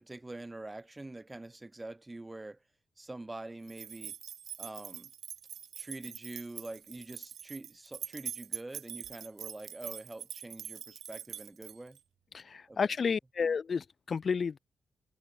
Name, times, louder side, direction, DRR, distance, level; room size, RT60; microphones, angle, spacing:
voice 1, 0.0-2.6 3.0-4.2 4.6-5.1 5.8-12.0 12.7-12.8, right 2 dB, 20° right, 0.9 m, -45 dB
sound 1, 3.7-12.0, right 9 dB, 85° right, 1.6 m, -44 dB
voice 2, 12.3-14.6, left 5 dB, 50° left, 0.6 m, -31 dB
cardioid pair, 95°, 0 cm